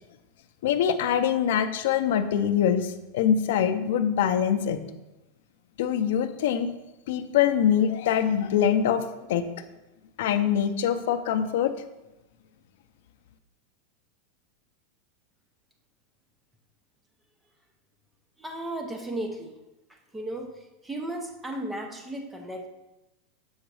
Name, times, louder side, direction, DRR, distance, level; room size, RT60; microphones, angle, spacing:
voice 1, 0.6-4.8 5.8-6.7 7.1-9.4 10.2-11.7, left 9 dB, 65° left, 9 dB, 0.5 m, -24 dB
voice 2, 18.4-19.5 20.1-20.5 20.9-22.7, right 1 dB, 5° right, 3 dB, 0.7 m, -34 dB
7.2 x 3.9 x 4.7 m, 0.99 s
supercardioid pair, 175°, 0 cm